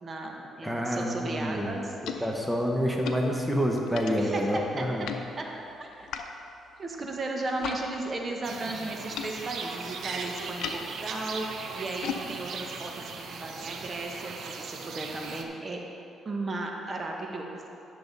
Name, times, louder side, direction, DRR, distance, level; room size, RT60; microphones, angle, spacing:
voice 1, 0.0-2.3 4.1-4.9 5.4-5.5 5.8-6.1 6.8-15.8 16.2-17.7, right 2 dB, 35° right, 1 dB, 1.0 m, -35 dB
voice 2, 0.6-1.8 2.0-5.1, equal, 5° right, 0 dB, 1.0 m, -28 dB
sound 1, 1.4-7.8 8.1-14.0, left 7 dB, 80° left, 0.6 m, -42 dB
sound 2, 8.4-15.4, right 5 dB, 65° right, 0.7 m, -39 dB
11.0 x 6.7 x 4.0 m, 2.8 s
cardioid pair, 90°, 0 cm